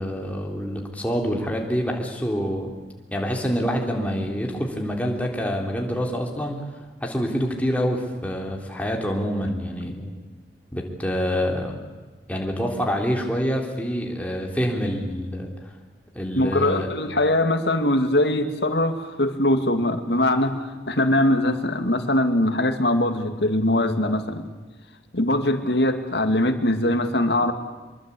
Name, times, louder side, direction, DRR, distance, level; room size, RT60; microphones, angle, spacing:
voice 1, 0.0-2.7 3.1-6.6 7.0-10.1 10.7-11.7 12.3-15.5 16.2-16.9, equal, 10° left, 1 dB, 3.7 m, -26 dB
voice 2, 16.4-24.5 25.1-27.5, left 1 dB, 75° left, 7 dB, 2.3 m, -22 dB
25.5 x 23.0 x 8.5 m, 1.3 s
head